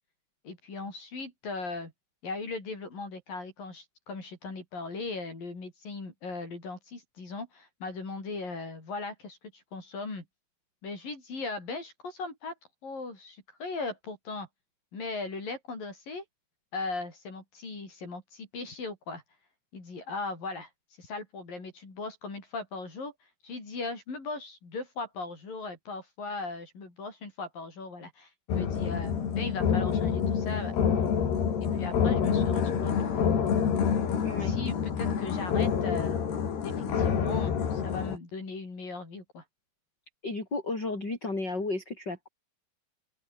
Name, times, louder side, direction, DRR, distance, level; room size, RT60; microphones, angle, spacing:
voice 1, 0.4-1.9 2.2-10.3 10.8-12.5 12.8-14.5 14.9-16.2 16.7-19.2 19.7-20.7 21.0-23.1 23.4-30.8 31.6-33.1 34.4-36.2 36.6-39.4, left 3 dB, 55° left, 8.9 m, -38 dB
sound 1, 28.5-38.2, left 7 dB, 70° left, 5.8 m, -27 dB
voice 2, 40.2-42.3, left 2 dB, 25° left, 7.3 m, -33 dB
open air
omnidirectional pair, 4.9 m